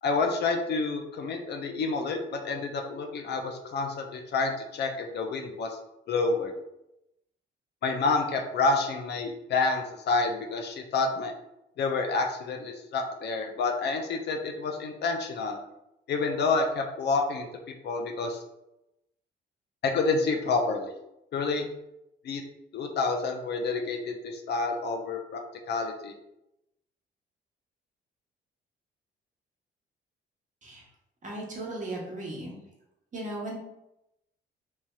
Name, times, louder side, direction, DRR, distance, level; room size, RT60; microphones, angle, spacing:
voice 1, 0.0-5.8 6.1-6.5 7.8-11.3 11.8-15.6 16.1-17.5 17.8-18.4 19.8-20.9 21.3-21.7 22.2-22.4 22.7-25.4 25.7-26.1, left 3 dB, 60° left, 3 dB, 0.5 m, -28 dB
voice 2, 31.2-32.6 33.1-33.6, right 2 dB, 40° right, -3 dB, 1.0 m, -36 dB
3.1 x 2.7 x 2.3 m, 0.87 s
cardioid pair, 90°, 20 cm